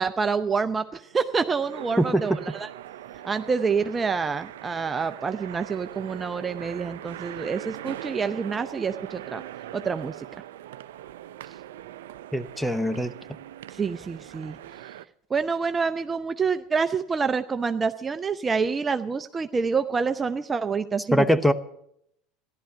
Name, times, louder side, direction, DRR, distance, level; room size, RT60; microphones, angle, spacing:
voice 1, 0.0-2.7 3.2-9.4 9.7-10.3 13.7-14.6 14.8-14.9 15.3-21.2, right 5 dB, 25° right, 10 dB, 0.6 m, -27 dB
sound 1, 0.7-15.1, right 12 dB, 80° right, 0.4 m, -41 dB
voice 2, 12.3-13.1 21.1-21.5, equal, ahead, 12 dB, 0.9 m, -22 dB
14.5 x 11.5 x 6.7 m, 0.75 s
hypercardioid pair, 80°, 0 cm